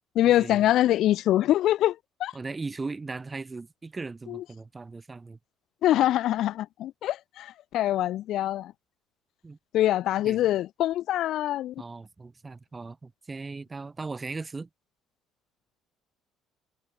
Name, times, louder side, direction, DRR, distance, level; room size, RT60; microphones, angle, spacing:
voice 1, 0.2-2.3 4.3-4.4 5.8-8.7 9.7-11.7, left 13 dB, 65° left, 0.5 m, -24 dB
voice 2, 2.3-5.4 9.4-9.6 10.2-10.5 11.8-14.7, right 3 dB, 20° right, 2.8 m, -38 dB
cardioid pair, 105°, 0 cm